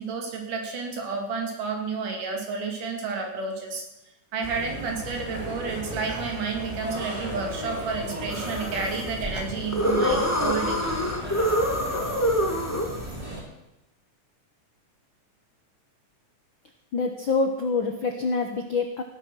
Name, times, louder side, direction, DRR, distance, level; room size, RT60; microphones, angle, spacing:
voice 1, 0.0-3.9 4.3-10.8, right 4 dB, 80° right, 2 dB, 4.1 m, -31 dB
sound 1, 4.4-13.4, right 1 dB, 10° right, 3.4 m, -36 dB
sound 2, 8.3-13.2, equal, 10° left, 1.0 m, -26 dB
voice 2, 16.9-19.0, left 4 dB, 70° left, 6 dB, 1.1 m, -26 dB
17.0 x 9.8 x 6.2 m, 0.90 s
omnidirectional pair, 3.7 m